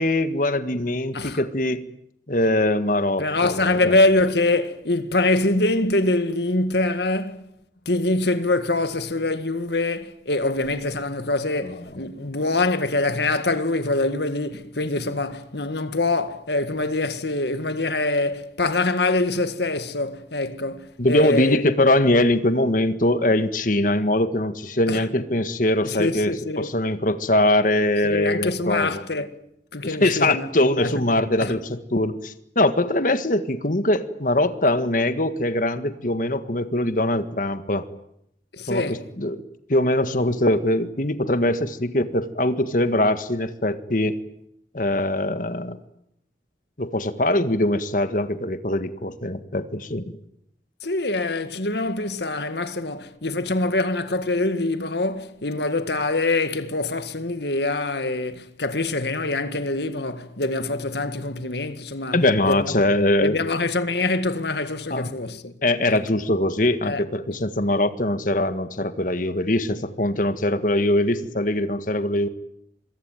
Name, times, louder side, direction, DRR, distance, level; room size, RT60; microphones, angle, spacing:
voice 1, 0.0-1.8 2.3-4.0 21.0-29.0 29.8-37.9 38.7-39.4 39.7-44.2 44.7-45.8 46.8-50.1 62.1-63.4 64.9-65.1 65.6-72.3, left 1 dB, 45° left, 1.7 m, -22 dB
voice 2, 3.2-7.5 7.9-21.6 24.9-25.1 25.8-26.7 28.0-29.3 29.7-30.5 30.8-30.9 31.4-31.5 38.5-39.1 50.8-62.7 63.2-65.5 65.8-66.0 66.8-67.0, left 2 dB, 65° left, 1.9 m, -24 dB
25.5 x 23.0 x 9.2 m
head